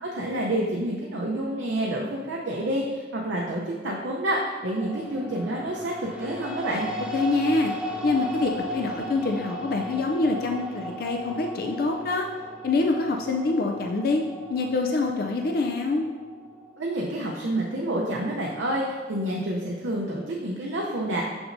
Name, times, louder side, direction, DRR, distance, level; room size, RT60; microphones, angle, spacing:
voice 1, 0.0-6.9 16.8-21.2, right 1 dB, 85° right, -2 dB, 0.6 m, -28 dB
sound 1, 4.8-17.0, equal, 5° right, 0.5 m, -36 dB
voice 2, 7.1-7.7 8.0-12.3 12.6-14.2 14.5-16.0, left 3 dB, 50° left, 2 dB, 0.4 m, -25 dB
6.3 x 6.0 x 2.6 m, 1.5 s
head